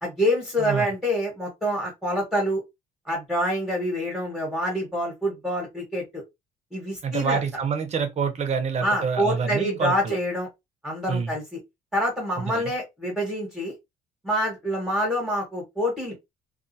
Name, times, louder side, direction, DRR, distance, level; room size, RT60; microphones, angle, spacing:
voice 1, 0.0-2.6 3.1-6.2 6.7-7.4 8.8-10.5 10.8-11.6 11.9-13.7 14.2-16.2, equal, 5° right, 1.2 m, -26 dB
voice 2, 0.6-0.9 7.0-10.2 11.1-11.3 12.5-12.6, right 6 dB, 40° right, 0.7 m, -27 dB
2.4 x 2.3 x 2.6 m
cardioid pair, 110°, 17 cm